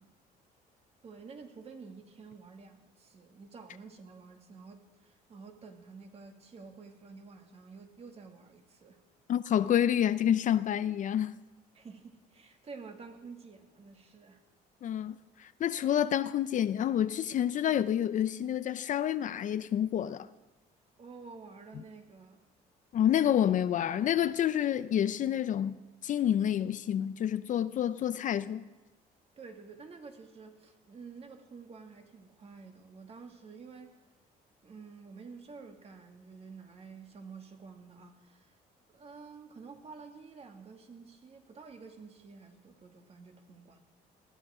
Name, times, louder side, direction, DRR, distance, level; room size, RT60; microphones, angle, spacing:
voice 1, 1.0-9.0 11.7-14.4 14.9-15.0 21.0-22.4 29.4-34.0 34.6-38.5 38.9-43.8, right 4 dB, 35° right, 2.0 m, -50 dB
voice 2, 9.3-11.4 14.8-20.3 22.9-28.7, left 10 dB, 50° left, 0.6 m, -28 dB
19.5 x 14.0 x 4.9 m
cardioid pair, 110°, 17 cm